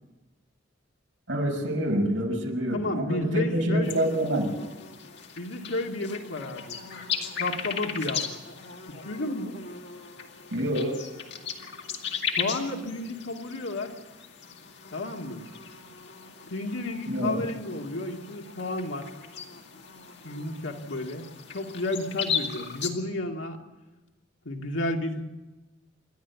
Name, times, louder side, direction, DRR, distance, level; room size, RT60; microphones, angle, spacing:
voice 1, 1.3-4.5 10.5-11.0 17.1-17.4, right 1 dB, 75° right, 1 dB, 5.3 m, -27 dB
voice 2, 2.7-4.1 5.4-6.8 7.4-8.3 8.9-9.6 12.3-13.9 14.9-15.4 16.5-19.1 20.2-21.3 21.5-23.6 24.4-25.2, left 2 dB, 80° left, 2 dB, 2.3 m, -32 dB
sound 1, 3.8-22.9, left 7 dB, 65° left, 2.2 m, -37 dB
28.5 x 12.0 x 8.4 m, 1.1 s
head